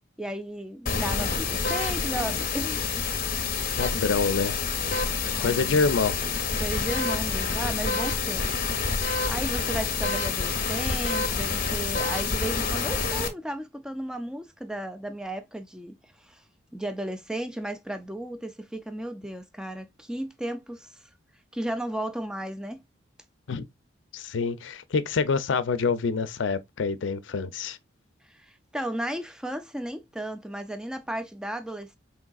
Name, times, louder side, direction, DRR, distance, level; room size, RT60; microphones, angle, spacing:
voice 1, 0.2-2.8 5.4-5.9 6.6-8.6 8.9-16.4 16.7-21.0 21.5-22.8 28.3-32.0, right 1 dB, 5° right, 0.4 m, -34 dB
sound 1, 0.9-13.3, left 4 dB, 45° left, 0.8 m, -28 dB
voice 2, 3.8-4.6 5.4-6.2 23.5-23.6 24.1-27.8, left 4 dB, 75° left, 0.5 m, -26 dB
4.7 x 3.6 x 2.3 m
head